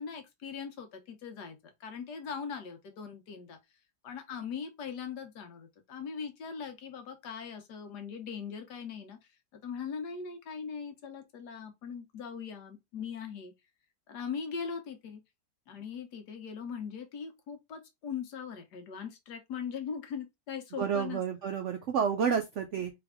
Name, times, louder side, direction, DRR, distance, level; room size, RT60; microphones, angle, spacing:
voice 1, 0.0-3.6 4.0-9.2 9.5-13.5 14.1-15.2 15.7-21.2, left 6 dB, 65° left, 1.4 m, -40 dB
voice 2, 20.8-22.9, right 7 dB, 85° right, 0.6 m, -30 dB
3.4 x 3.4 x 3.4 m
omnidirectional pair, 2.0 m